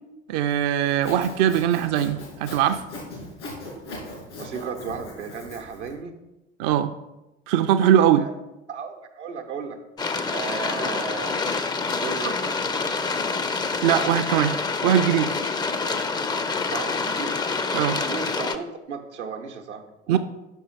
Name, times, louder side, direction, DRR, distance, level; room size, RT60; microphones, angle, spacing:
voice 1, 0.3-2.8 6.6-6.9 7.5-8.3 13.8-14.6 14.8-15.3 17.7-18.0 20.1-20.2, right 10 dB, 55° right, 8 dB, 0.5 m, -21 dB
Sawing, 0.9-5.9, left 2 dB, 80° left, 2.5 m, -39 dB
voice 2, 4.4-6.1 8.2-8.3 8.7-9.8 10.3-11.4 11.9-12.5 16.7-17.4 18.1-20.2, right 6 dB, 85° right, 4 dB, 0.9 m, -34 dB
sound 1, 10.0-18.6, left 4 dB, 10° left, 0.4 m, -27 dB
5.5 x 5.4 x 5.0 m, 0.98 s
figure-of-eight pair, 65°, 35 cm